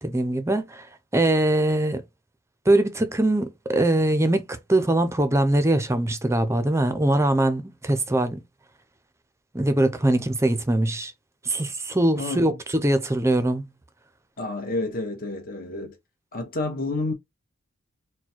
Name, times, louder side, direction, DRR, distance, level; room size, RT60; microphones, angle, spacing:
voice 1, 0.0-0.9 1.1-2.0 2.7-8.4 9.5-11.1 11.4-13.7, right 1 dB, 15° right, 0.6 m, -22 dB
voice 2, 12.2-12.5 14.4-15.9 16.3-17.1, left 2 dB, 40° left, 1.3 m, -29 dB
4.4 x 2.2 x 4.4 m
head